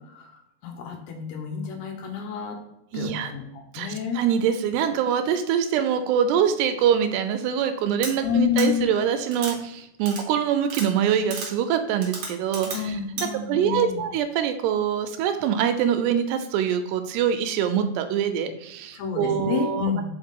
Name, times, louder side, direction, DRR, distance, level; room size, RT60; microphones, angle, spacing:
voice 1, 0.6-2.6 2.9-4.2 8.2-8.9 12.7-14.0 18.9-20.1, left 7 dB, 75° left, 2 dB, 2.9 m, -29 dB
voice 2, 2.9-3.3 3.7-20.1, right 8 dB, 85° right, 8 dB, 2.6 m, -24 dB
sound 1, 8.0-8.1 8.6-8.7 9.3-9.5 10.1-10.2 10.7-10.9 11.3-11.5 12.0-12.8 13.2-13.3, right 4 dB, 65° right, 1.7 m, -32 dB
5.7 x 5.3 x 3.6 m, 0.86 s
omnidirectional pair, 4.9 m